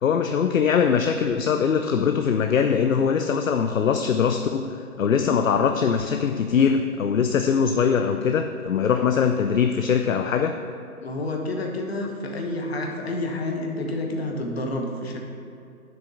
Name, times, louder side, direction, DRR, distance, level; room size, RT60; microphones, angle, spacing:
voice 1, 0.0-10.6, left 6 dB, 60° left, 7 dB, 0.6 m, -22 dB
voice 2, 11.0-15.2, left 2 dB, 45° left, 1 dB, 1.3 m, -29 dB
7.4 x 5.4 x 7.0 m, 2.5 s
figure-of-eight pair, 150°, 45 cm